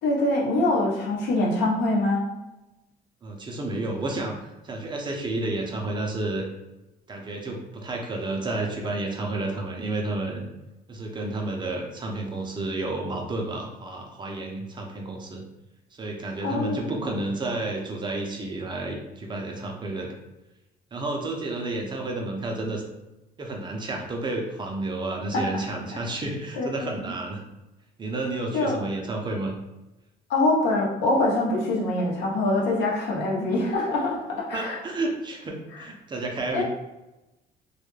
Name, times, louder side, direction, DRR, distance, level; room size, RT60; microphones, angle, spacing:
voice 1, 0.0-2.2 16.4-16.9 25.3-25.5 25.9-26.0 26.5-27.1 28.5-28.8 30.3-34.8 36.5-36.6, left 2 dB, 80° left, -3 dB, 0.8 m, -24 dB
voice 2, 3.2-6.4 7.1-10.4 10.9-15.4 16.0-20.1 20.9-22.8 23.4-27.4 28.0-29.5 34.5-36.6, right 2 dB, 25° right, 1 dB, 0.5 m, -31 dB
2.3 x 2.1 x 3.0 m, 0.97 s
cardioid pair, 110°, 17 cm